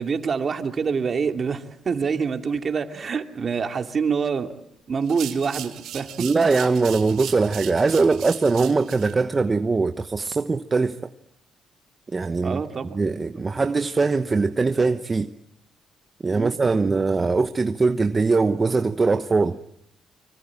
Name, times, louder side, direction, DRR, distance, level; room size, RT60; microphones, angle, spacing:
voice 1, 0.0-4.5 4.9-6.1 12.4-13.0 16.3-16.9, right 5 dB, 45° right, 2.6 m, -26 dB
sound 1, 5.0-9.1, right 11 dB, 85° right, 2.5 m, -38 dB
voice 2, 6.2-11.0 12.1-12.6 12.9-15.3 16.2-19.6, right 4 dB, 30° right, 1.1 m, -21 dB
26.0 x 24.5 x 8.8 m
cardioid pair, 90°, 0 cm